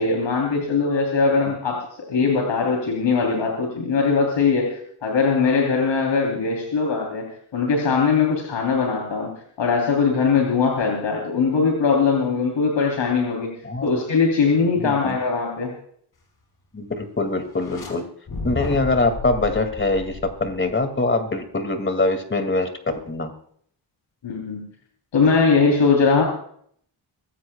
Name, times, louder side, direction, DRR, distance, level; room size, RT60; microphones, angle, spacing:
voice 1, 0.0-4.7 5.0-7.3 7.5-9.3 9.6-13.5 13.8-15.7 24.2-24.6 25.1-26.2, left 5 dB, 85° left, 0 dB, 3.5 m, -20 dB
voice 2, 14.7-15.2 16.7-18.0 18.4-22.7 23.1-23.3, left 2 dB, 25° left, 8 dB, 2.3 m, -23 dB
sound 1, 17.5-17.9 18.3-20.8, left 3 dB, 60° left, 5.0 m, -33 dB
24.0 x 16.0 x 2.3 m, 0.63 s
wide cardioid pair, 140°, 44 cm